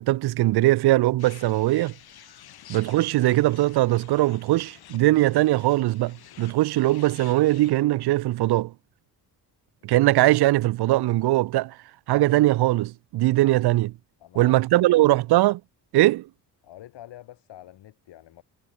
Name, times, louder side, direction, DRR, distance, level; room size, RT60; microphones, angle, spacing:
voice 1, 0.0-1.9 2.7-8.7 9.8-11.8 12.1-13.9 14.4-15.6 15.9-16.3, right 17 dB, 65° right, 0.5 m, -21 dB
sound 1, 1.2-7.7, left 12 dB, 60° left, 1.0 m, -50 dB
voice 2, 14.2-15.2 16.6-18.4, left 13 dB, 80° left, 1.3 m, -47 dB
cardioid pair, 90°, 42 cm